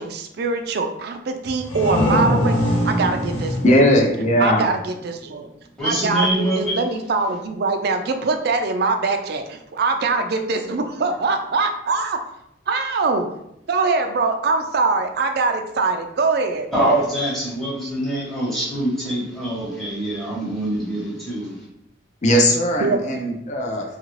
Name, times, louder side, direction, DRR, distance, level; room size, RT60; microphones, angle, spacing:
voice 1, 0.0-2.6 2.8-3.8 4.4-5.5 5.8-12.2 12.7-13.3 13.7-16.7 22.8-23.0, right 3 dB, 55° right, 6 dB, 0.3 m, -23 dB
sound 1, 1.4-5.0, equal, 75° left, 0.7 m, -23 dB
voice 2, 3.6-4.7 22.2-23.8, equal, 35° left, 0 dB, 0.5 m, -18 dB
voice 3, 5.8-6.8 16.7-21.6, right 1 dB, ahead, -8 dB, 1.0 m, -24 dB
2.8 x 2.5 x 3.1 m, 0.80 s
head